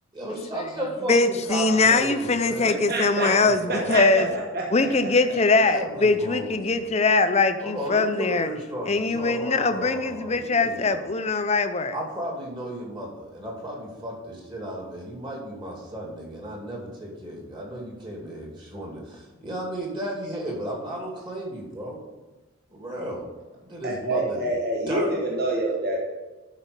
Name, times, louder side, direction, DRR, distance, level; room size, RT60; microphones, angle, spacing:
voice 1, 0.1-2.9 3.2-4.3 5.6-6.9 7.6-11.3 11.9-22.0 22.7-23.3 23.7-24.5 24.9-25.1 25.5-25.8, right 1 dB, 20° right, 2.6 m, -34 dB
voice 2, 1.1-4.3 4.7-8.5 8.9-12.0, left 3 dB, 30° left, 0.6 m, -22 dB
voice 3, 2.9-3.3 3.9-4.0 4.5-5.1 23.8-26.0, right 1 dB, 45° right, 1.4 m, -27 dB
12.5 x 5.2 x 5.3 m
head